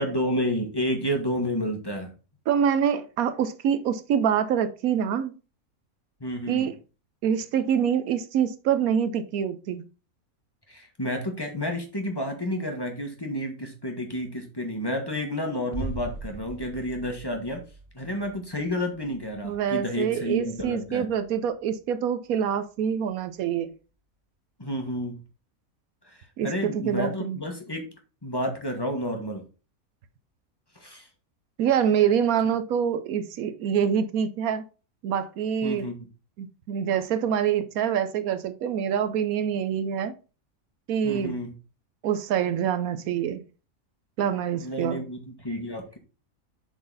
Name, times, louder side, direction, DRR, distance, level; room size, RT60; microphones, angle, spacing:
voice 1, 0.0-2.1 6.2-6.7 10.7-17.6 17.9-21.1 24.6-25.2 26.4-27.9 28.2-29.4 30.8-31.1 35.6-35.9 41.0-41.5 44.6-46.0, equal, 15° left, 1.4 m, -30 dB
voice 2, 2.5-5.3 6.5-6.7 7.2-9.8 19.4-23.7 26.4-27.4 31.6-34.6 35.0-35.9 36.4-40.1 40.9-41.3 42.0-43.4 44.2-45.0, right 8 dB, 80° right, 1.1 m, -25 dB
sound 1, 15.7-21.5 21.7-21.8, right 1 dB, 40° right, 0.8 m, -41 dB
7.6 x 4.0 x 3.9 m
omnidirectional pair, 1.5 m